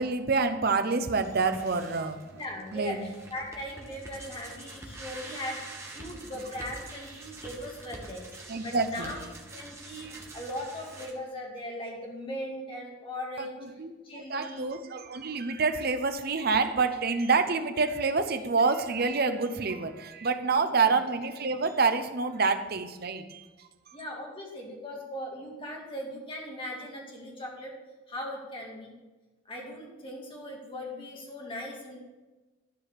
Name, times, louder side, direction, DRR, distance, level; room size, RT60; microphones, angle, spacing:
voice 1, 0.0-2.2 2.7-3.0 8.5-9.1 9.9-10.2 13.4-13.5 13.8-23.7, right 4 dB, 55° right, 8 dB, 0.8 m, -27 dB
sound 1, 1.2-11.1, right 2 dB, 15° right, 1.5 m, -46 dB
voice 2, 2.3-5.6 5.9-9.2 9.5-13.6 14.0-14.7 20.6-21.0 23.9-27.7 28.1-28.9 29.5-32.0, equal, 25° left, -1 dB, 2.2 m, -39 dB
13.0 x 4.9 x 6.8 m, 1.2 s
head